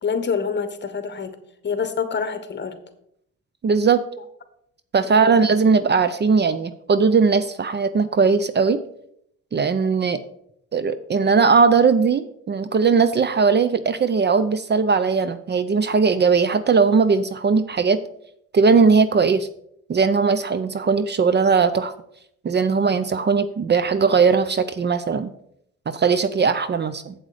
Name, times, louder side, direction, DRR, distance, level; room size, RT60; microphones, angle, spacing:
voice 1, 0.0-1.3 1.6-2.8 5.0-5.4, left 6 dB, 35° left, 10 dB, 1.3 m, -26 dB
voice 2, 3.6-4.0 4.9-8.8 9.5-10.2 10.7-18.0 18.5-19.5 19.9-21.9 22.4-25.3 25.9-27.1, right 5 dB, 35° right, 13 dB, 0.6 m, -19 dB
7.9 x 7.9 x 5.0 m, 0.72 s
cardioid pair, 90°, 30 cm